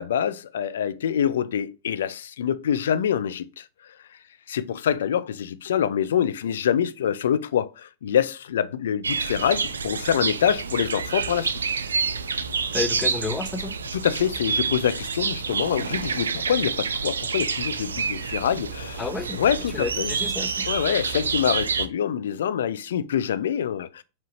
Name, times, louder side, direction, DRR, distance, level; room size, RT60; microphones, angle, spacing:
voice 1, 0.0-3.7 4.5-11.5 14.0-19.0 19.3-20.1 20.7-24.0, left 9 dB, 60° left, 0.3 m, -25 dB
sound 1, 9.0-21.9, right 5 dB, 70° right, 0.3 m, -28 dB
voice 2, 12.7-13.7 19.0-19.4 19.7-20.6, left 3 dB, 15° left, 0.6 m, -30 dB
4.7 x 2.9 x 2.8 m
figure-of-eight pair, 90°, 0 cm